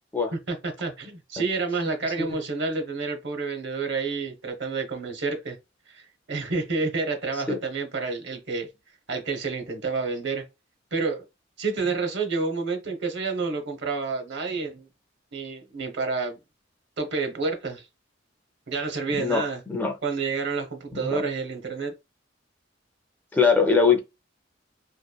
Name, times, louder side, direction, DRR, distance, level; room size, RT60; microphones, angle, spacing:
voice 1, 0.3-5.6 5.9-8.7 9.1-10.4 10.9-11.3 11.6-14.9 15.3-16.4 17.0-17.9 18.7-19.6 20.0-21.9, right 4 dB, 65° right, 0.7 m, -29 dB
voice 2, 19.1-19.9 20.9-21.2 23.3-24.0, left 5 dB, 10° left, 0.4 m, -22 dB
2.9 x 2.2 x 2.2 m
head